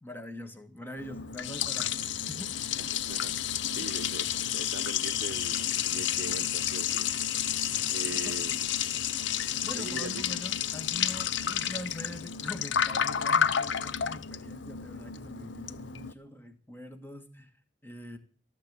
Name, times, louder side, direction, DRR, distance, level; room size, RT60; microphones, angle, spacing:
voice 1, 0.0-2.6 3.8-3.9 8.2-8.3 9.6-17.5 17.8-18.2, left 1 dB, 10° left, 1.6 m, -43 dB
Liquid, 1.0-16.1, left 9 dB, 75° left, 0.7 m, -31 dB
voice 2, 2.7-7.1 7.9-8.7 9.7-10.2 13.2-13.3 13.7-13.8, right 4 dB, 80° right, 0.7 m, -42 dB
16.0 x 7.5 x 9.7 m
head